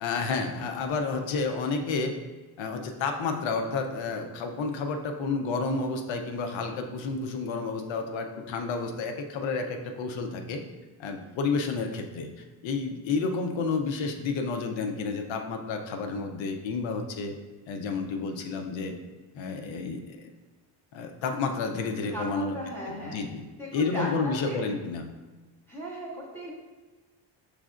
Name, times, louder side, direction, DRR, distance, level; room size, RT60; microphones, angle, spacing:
voice 1, 0.0-2.1 2.6-10.6 11.0-12.3 12.6-17.3 17.7-19.0 19.3-20.3 20.9-22.6 23.0-23.4 23.7-25.0, left 4 dB, 70° left, 4 dB, 0.7 m, -30 dB
voice 2, 22.1-23.2 23.6-24.6 25.7-26.5, equal, 5° left, -6 dB, 0.6 m, -37 dB
6.2 x 3.2 x 2.4 m, 1.3 s
cardioid pair, 165°, 47 cm